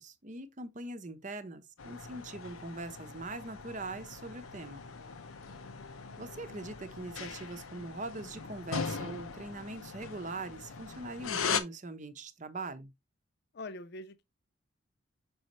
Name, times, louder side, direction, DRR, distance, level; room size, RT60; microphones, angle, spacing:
voice 1, 0.0-4.8 6.2-12.9, right 2 dB, 35° right, 0.7 m, -42 dB
sound 1, 1.8-11.6, left 6 dB, 90° left, 0.8 m, -40 dB
voice 2, 4.9-5.9 13.5-14.2, left 2 dB, 50° left, 0.4 m, -47 dB
6.2 x 5.2 x 3.0 m
head